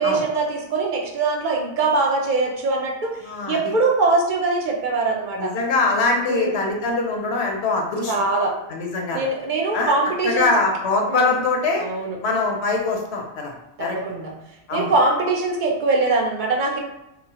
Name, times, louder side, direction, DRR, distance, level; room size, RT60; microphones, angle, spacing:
voice 1, 0.0-3.1 3.5-5.5 6.3-6.6 8.1-8.5 9.1-10.5 11.1-11.3 11.8-12.2 13.8-14.3 14.7-16.8, right 3 dB, 55° right, 0 dB, 0.6 m, -22 dB
voice 2, 3.2-3.7 5.4-8.2 8.7-9.2 9.7-9.9 10.2-11.8 12.2-14.0 14.7-14.9, left 3 dB, 75° left, 0 dB, 0.8 m, -23 dB
2.9 x 2.0 x 2.7 m, 0.90 s
omnidirectional pair, 1.1 m